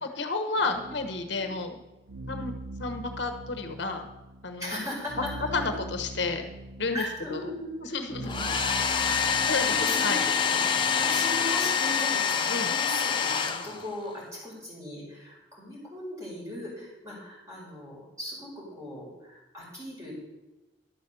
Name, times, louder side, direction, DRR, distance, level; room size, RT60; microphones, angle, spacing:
voice 1, 0.0-1.8 2.3-2.5 2.8-4.1 4.4-4.8 5.5-6.5 6.8-7.0 7.3-7.4 7.8-8.3 9.5-9.7 10.0-10.2 12.5-12.7, left 3 dB, 70° left, 6 dB, 1.1 m, -31 dB
voice 2, 0.6-1.0 1.3-1.5 2.3-2.4 4.6-5.7 6.9-8.5 8.9-10.2 10.5-10.6 10.9-20.1, left 1 dB, 15° right, -5 dB, 5.0 m, -38 dB
sound 1, 0.7-9.9, right 1 dB, 75° right, 0.7 m, -42 dB
Domestic sounds home sounds, 8.2-14.1, left 6 dB, 25° left, 0.7 m, -26 dB
11.5 x 7.0 x 6.8 m, 1.0 s
head